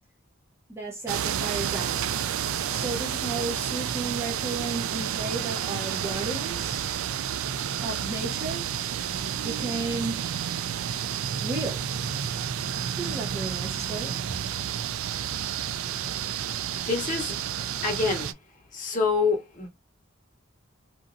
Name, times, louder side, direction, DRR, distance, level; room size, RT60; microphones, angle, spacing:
voice 1, 0.7-2.1 2.7-6.9 7.8-8.6 9.4-10.2 11.4-11.8 13.0-14.2, right 3 dB, 10° right, 0.8 m, -34 dB
sound 1, 1.1-18.3, right 9 dB, 85° right, 0.4 m, -30 dB
voice 2, 16.8-17.4 17.8-18.3 18.7-19.7, left 4 dB, 40° left, 0.9 m, -26 dB
3.0 x 2.5 x 2.6 m
head